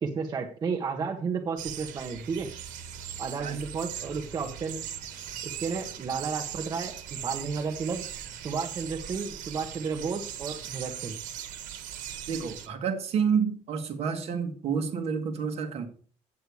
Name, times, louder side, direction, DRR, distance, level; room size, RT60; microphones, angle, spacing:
voice 1, 0.0-2.5 3.2-4.8 5.4-8.0 8.4-11.2, right 5 dB, 30° right, 2 dB, 1.1 m, -32 dB
sound 1, 1.6-12.7, right 10 dB, 85° right, 1.4 m, -39 dB
voice 2, 12.3-15.9, right 6 dB, 50° right, 6 dB, 1.6 m, -29 dB
8.8 x 8.4 x 4.8 m, 0.42 s
cardioid pair, 155°, 13 cm